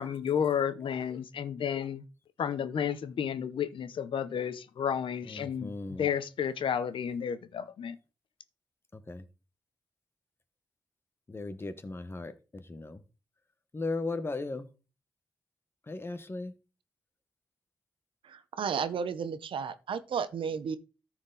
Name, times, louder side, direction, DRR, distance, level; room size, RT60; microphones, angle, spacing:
voice 1, 0.0-2.0 2.4-5.7 6.0-8.0, left 8 dB, 85° left, 0.8 m, -32 dB
voice 2, 5.2-6.1 8.9-9.2 11.3-13.0 13.7-14.7 15.9-16.5, left 3 dB, 30° left, 1.1 m, -37 dB
voice 3, 18.2-20.8, right 6 dB, 85° right, 0.8 m, -33 dB
13.5 x 4.6 x 4.0 m
wide cardioid pair, 95°, 9 cm